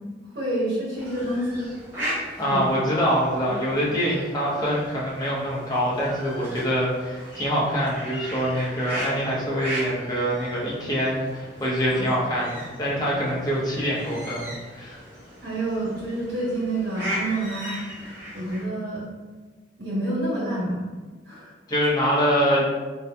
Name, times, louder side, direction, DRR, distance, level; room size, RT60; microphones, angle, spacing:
voice 1, 0.3-1.7 2.4-2.6 3.4-3.5 11.9-12.0 15.4-17.8 18.3-19.0 19.8-20.8 21.3-21.5, right 1 dB, 65° right, -6 dB, 1.0 m, -28 dB
sound 1, 0.9-18.6, equal, 15° right, 0.8 m, -37 dB
voice 2, 2.4-15.0 21.7-22.7, equal, 20° left, -6 dB, 0.7 m, -25 dB
3.7 x 2.8 x 2.2 m, 1.3 s
head